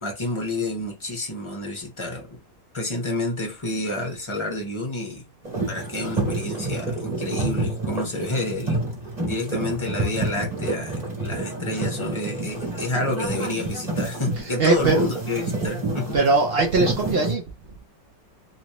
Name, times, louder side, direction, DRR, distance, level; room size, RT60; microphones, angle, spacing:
voice 1, 0.0-2.4 2.7-5.3 5.7-8.8 9.3-16.2, left 1 dB, 20° left, 0.9 m, -29 dB
sound 1, 5.4-17.3, right 2 dB, 25° right, 1.6 m, -29 dB
voice 2, 14.4-15.0 15.4-15.5 16.1-17.4, right 3 dB, 85° right, 0.5 m, -21 dB
3.1 x 3.0 x 2.9 m
omnidirectional pair, 1.9 m